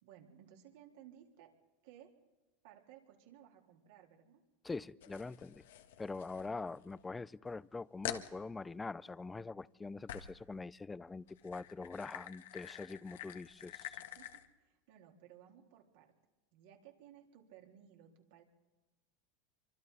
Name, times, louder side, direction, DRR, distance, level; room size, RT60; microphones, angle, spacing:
voice 1, 0.0-1.5 1.8-2.1 2.6-4.4 14.0-16.1 16.5-18.4, right 10 dB, 65° right, 4.0 m, -59 dB
voice 2, 4.6-5.6 6.0-14.0, left 3 dB, 15° left, 0.6 m, -44 dB
sound 1, 5.0-7.1 7.5-7.6 8.0-8.3 10.1-10.4 11.2-14.5, left 12 dB, 75° left, 1.6 m, -47 dB
25.5 x 25.0 x 4.2 m
hypercardioid pair, 105°, 0 cm